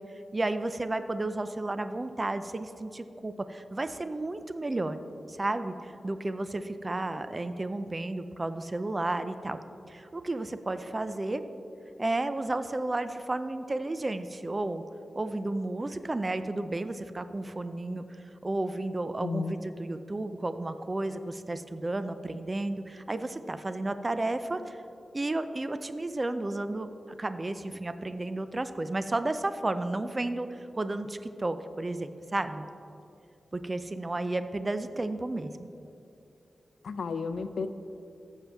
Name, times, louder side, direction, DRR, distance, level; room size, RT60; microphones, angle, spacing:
voice 1, 0.3-5.0 5.3-9.6 9.9-11.4 12.0-14.8 15.2-18.0 18.4-24.8 25.1-26.9 27.2-32.6 33.5-35.5, right 2 dB, 25° right, 10 dB, 0.4 m, -32 dB
voice 2, 19.2-19.5 36.8-37.7, left 5 dB, 85° left, 10 dB, 0.4 m, -32 dB
14.5 x 7.3 x 3.4 m, 2.8 s
wide cardioid pair, 135°, 0 cm